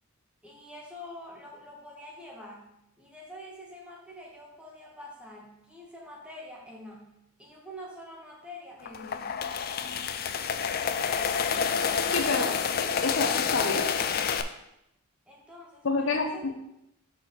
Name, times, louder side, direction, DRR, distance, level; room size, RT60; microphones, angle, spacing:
voice 1, 0.4-2.7 3.0-7.1 7.4-9.3 15.3-16.5, left 1 dB, 5° right, -3 dB, 1.3 m, -46 dB
sound 1, 8.8-14.4, left 7 dB, 45° left, 0.4 m, -28 dB
voice 2, 12.1-13.9 15.8-16.5, left 3 dB, 60° left, 3 dB, 0.8 m, -29 dB
4.8 x 4.8 x 5.6 m, 0.81 s
head